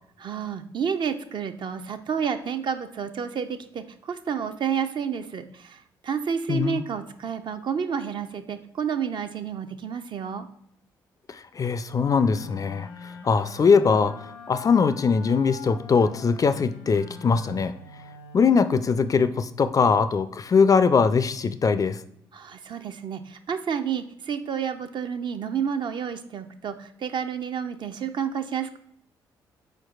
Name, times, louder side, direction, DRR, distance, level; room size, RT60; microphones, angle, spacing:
voice 1, 0.2-10.5 22.3-28.8, right 7 dB, 50° right, 8 dB, 0.5 m, -30 dB
voice 2, 6.5-6.8 11.3-14.2 14.5-17.7 18.3-22.0, left 5 dB, 35° left, 13 dB, 0.3 m, -21 dB
sound 1, 12.0-19.4, left 3 dB, 85° left, 0.7 m, -44 dB
4.5 x 4.4 x 2.3 m, 0.71 s
hypercardioid pair, 45°, 11 cm